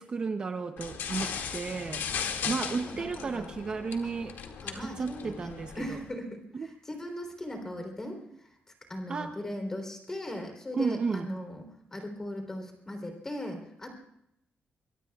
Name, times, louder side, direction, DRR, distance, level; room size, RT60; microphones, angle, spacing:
voice 1, 0.0-2.1 2.5-4.4 4.7-6.0 6.5-6.7 9.1-9.4 10.7-11.3, right 4 dB, 30° right, 6 dB, 0.7 m, -33 dB
sound 1, 0.8-6.0, left 7 dB, 85° left, 2.1 m, -37 dB
voice 2, 2.7-3.5 4.0-4.1 4.6-8.6 8.9-14.0, left 1 dB, 15° left, 4 dB, 3.5 m, -39 dB
24.0 x 22.5 x 2.4 m, 0.78 s
wide cardioid pair, 175°, 3 cm